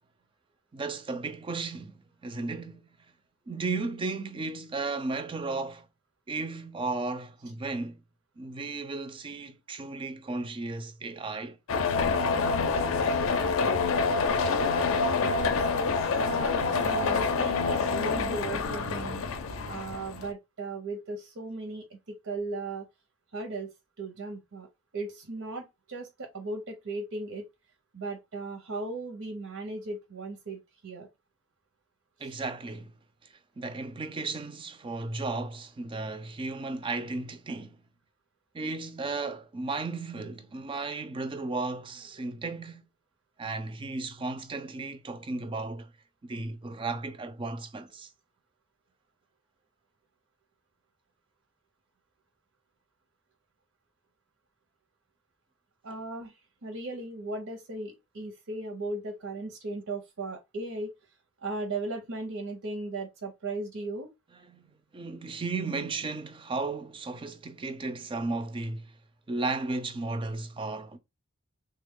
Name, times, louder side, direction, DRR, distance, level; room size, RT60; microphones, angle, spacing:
voice 1, 0.7-2.8 3.5-5.9 6.3-8.0 8.4-11.6 32.2-32.9 33.6-37.8 38.5-42.8 43.4-45.9 46.2-48.1 64.5-64.6 64.9-68.9 69.3-71.0, right 3 dB, 25° right, 0.3 m, -34 dB
sound 1, 11.7-20.3, left 4 dB, 70° left, 0.5 m, -27 dB
voice 2, 16.2-19.2 19.7-22.9 23.3-24.7 24.9-27.5 27.9-31.1 32.2-32.4 55.8-56.3 56.6-60.9 61.4-64.1 65.3-65.4, right 2 dB, 80° right, 0.7 m, -37 dB
3.3 x 2.2 x 3.6 m
head